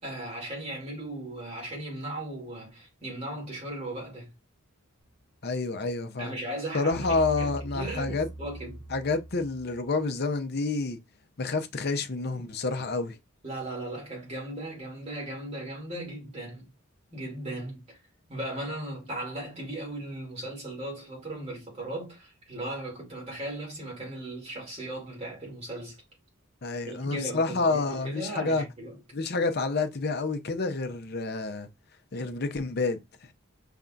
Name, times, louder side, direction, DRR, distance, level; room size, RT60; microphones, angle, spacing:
voice 1, 0.0-4.3 6.2-8.9 13.4-16.7 17.1-18.0 18.3-26.0 26.8-29.0, right 1 dB, 30° right, 2.5 m, -37 dB
voice 2, 5.4-6.4 6.7-8.3 8.9-11.0 11.4-13.2 26.6-28.6 29.1-31.7 32.1-33.0, left 3 dB, 50° left, 0.7 m, -28 dB
sound 1, 6.9-10.0, right 1 dB, 90° left, 0.8 m, -41 dB
5.3 x 3.4 x 2.5 m
head